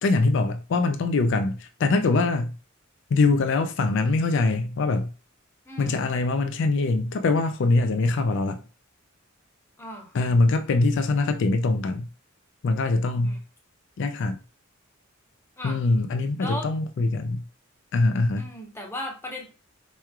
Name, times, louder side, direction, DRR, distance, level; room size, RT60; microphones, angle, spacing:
voice 1, 0.0-2.5 3.1-5.1 5.8-8.6 10.1-12.1 12.6-13.4 14.0-14.4 15.6-17.4 17.9-18.5, left 3 dB, 60° left, 0.4 m, -23 dB
voice 2, 5.7-6.1 9.8-10.1 13.2-13.4 15.6-15.8 16.4-16.7 18.4-19.5, left 1 dB, 10° left, 0.9 m, -36 dB
4.5 x 3.1 x 2.3 m
head